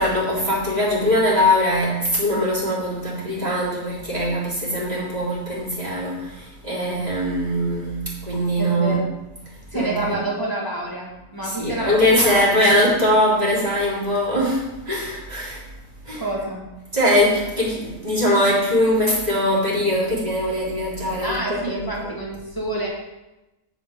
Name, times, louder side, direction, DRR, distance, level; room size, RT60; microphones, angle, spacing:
voice 1, 0.0-9.1 9.7-10.2 11.4-15.6 16.0-16.2 16.9-22.1, left 1 dB, 30° right, -9 dB, 3.4 m, -21 dB
voice 2, 8.6-9.1 9.7-12.4 12.7-12.9 16.2-16.6 21.2-22.9, right 1 dB, 15° left, -3 dB, 1.6 m, -28 dB
8.2 x 5.4 x 5.2 m, 0.99 s
omnidirectional pair, 1.5 m